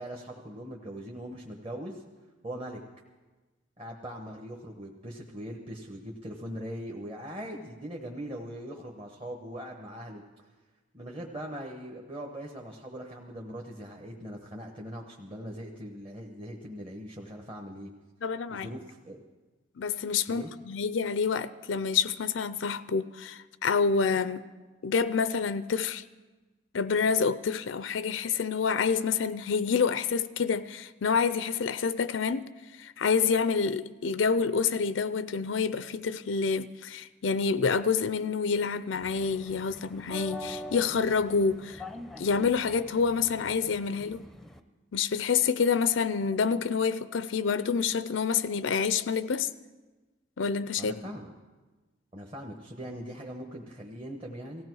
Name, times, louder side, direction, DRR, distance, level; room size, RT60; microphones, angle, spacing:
voice 1, 0.0-2.0 2.4-2.8 3.8-10.5 10.9-17.9 18.5-19.2 20.3-20.5 50.8-51.3 52.1-54.6, equal, 30° right, 1.1 m, -41 dB
voice 2, 18.2-18.7 19.8-24.4 24.8-26.0 26.7-41.8 42.2-44.2 44.9-49.5 50.4-50.9, left 5 dB, 80° left, 0.5 m, -28 dB
sound 1, 38.9-44.6, left 1 dB, ahead, 0.6 m, -44 dB
18.0 x 16.0 x 4.7 m
head